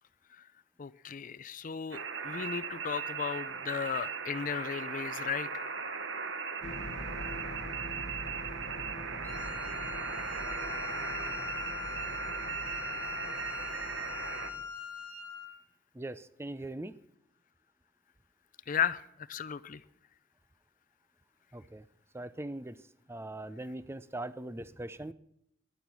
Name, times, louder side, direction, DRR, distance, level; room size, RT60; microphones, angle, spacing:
voice 1, 0.8-5.7 18.7-19.8, left 7 dB, 40° left, 16 dB, 0.5 m, -35 dB
sound 1, 1.9-14.5, right 6 dB, 70° right, 1.1 m, -38 dB
sound 2, 6.6-14.6, left 1 dB, 70° left, 1.3 m, -45 dB
Wind instrument woodwind instrument, 9.2-15.6, left 7 dB, 10° left, 2.7 m, -41 dB
voice 2, 16.0-16.9 21.5-21.8 22.1-22.8 23.1-25.1, right 1 dB, 15° right, 15 dB, 0.5 m, -40 dB
18.5 x 11.5 x 6.1 m, 0.80 s
head